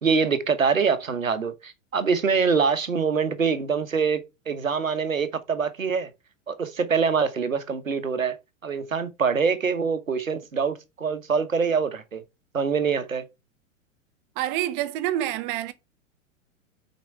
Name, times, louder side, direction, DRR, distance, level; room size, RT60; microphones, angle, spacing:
voice 1, 0.0-6.1 6.5-8.4 8.6-12.2 12.5-13.3, right 5 dB, 85° right, 1.2 m, -24 dB
voice 2, 14.4-15.7, right 13 dB, 40° right, 0.9 m, -27 dB
6.2 x 5.0 x 4.5 m
figure-of-eight pair, 100°, 39 cm